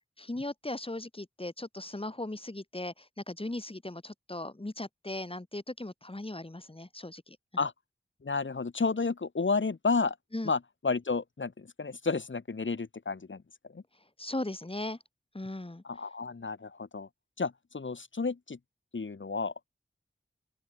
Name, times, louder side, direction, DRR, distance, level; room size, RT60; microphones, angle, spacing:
voice 1, 0.2-7.4 10.3-10.5 14.2-15.0 15.3-15.8, left 2 dB, 25° left, 2.9 m, -38 dB
voice 2, 8.2-10.2 10.4-13.4 13.7-13.8 15.8-17.1 17.4-18.6 18.9-19.5, left 4 dB, 70° left, 2.5 m, -31 dB
open air
cardioid pair, 45°, 20 cm